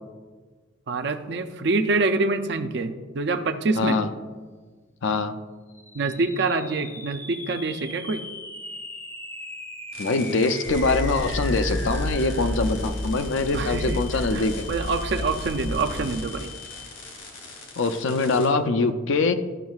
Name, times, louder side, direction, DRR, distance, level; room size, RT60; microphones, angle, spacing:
voice 1, 0.9-4.0 5.9-8.2 13.5-14.0 14.3-16.5, right 3 dB, 55° right, 8 dB, 0.4 m, -26 dB
voice 2, 3.8-4.1 5.0-5.4 10.0-14.7 17.8-19.4, left 3 dB, 70° left, 9 dB, 0.5 m, -23 dB
sound 1, 5.7-17.2, left 2 dB, 10° left, 0.3 m, -41 dB
sound 2, 9.9-18.5, left 3 dB, 85° left, 2.2 m, -43 dB
sound 3, 10.7-16.1, left 1 dB, 40° left, 0.7 m, -31 dB
12.0 x 6.2 x 2.4 m, 1.4 s
head